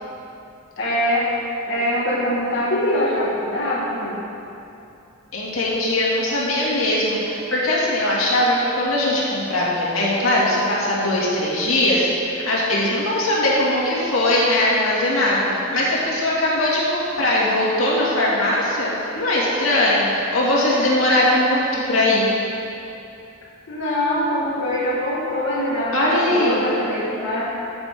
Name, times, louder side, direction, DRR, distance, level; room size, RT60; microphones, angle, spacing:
voice 1, 0.8-1.3 1.7-4.2 23.7-27.4, left 1 dB, 60° left, -9 dB, 1.7 m, -23 dB
voice 2, 5.3-15.4 15.7-22.2 25.9-26.7, left 1 dB, 80° left, -6 dB, 2.4 m, -20 dB
14.5 x 6.9 x 3.8 m, 2.7 s
head